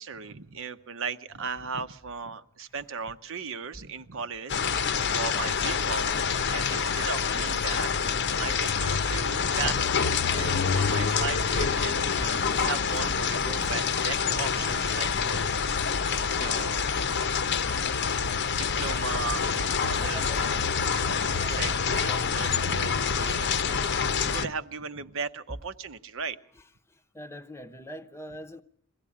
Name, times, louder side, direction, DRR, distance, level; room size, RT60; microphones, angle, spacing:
voice 1, 0.0-8.1 8.4-15.5 15.9-17.0 18.5-26.4, right 5 dB, 65° right, 0.9 m, -37 dB
sound 1, 4.5-24.5, left 6 dB, 55° left, 0.8 m, -27 dB
voice 2, 10.2-10.9 12.1-13.1 13.5-13.7 15.1-15.2 19.9-22.3 22.6-22.8 23.1-23.4 27.1-28.6, equal, 10° left, 0.9 m, -42 dB
22.0 x 15.5 x 8.5 m
head